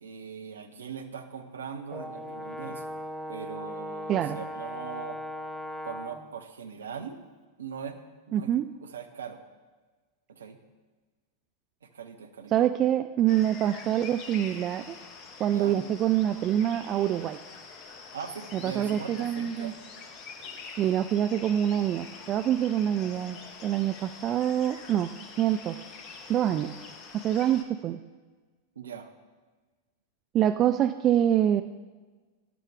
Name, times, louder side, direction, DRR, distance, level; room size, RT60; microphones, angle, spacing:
voice 1, 0.0-3.0 3.3-5.2 5.8-7.2 7.6-8.0 8.3-8.5 8.8-9.4 10.3-10.6 11.8-12.5 15.5-15.8 18.1-19.8 20.4-20.5 28.8-29.1, right 6 dB, 70° right, 7 dB, 0.9 m, -40 dB
Brass instrument, 1.9-6.3, equal, 5° right, 0.8 m, -38 dB
voice 2, 8.3-8.7 12.5-15.0 15.4-17.4 18.5-19.7 20.8-25.1 25.4-25.8 26.3-26.7 27.1-28.0 30.3-31.6, right 11 dB, 30° right, 10 dB, 0.3 m, -25 dB
sound 1, 13.3-27.6, left 4 dB, 35° left, 1.2 m, -45 dB
13.5 x 10.5 x 3.5 m, 1.3 s
figure-of-eight pair, 90°, 0 cm